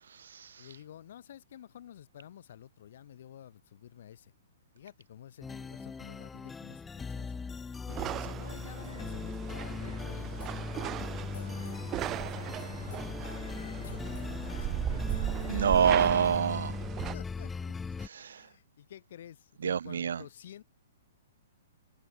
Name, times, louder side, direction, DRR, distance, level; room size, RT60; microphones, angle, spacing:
voice 1, 0.6-4.3 4.7-7.4 7.9-11.5 11.9-13.0 13.7-14.8 16.8-17.7 18.2-20.6, left 10 dB, 55° left, 3.9 m, -51 dB
sound 1, 5.4-18.1, left 5 dB, 5° left, 0.4 m, -39 dB
sound 2, 7.9-17.1, right 14 dB, 20° right, 1.2 m, -37 dB
sound 3, 8.4-16.4, left 7 dB, 85° left, 2.4 m, -49 dB
voice 2, 15.5-16.8 18.0-18.4 19.6-20.3, right 7 dB, 80° right, 0.3 m, -27 dB
hypercardioid pair, 170°, 0 cm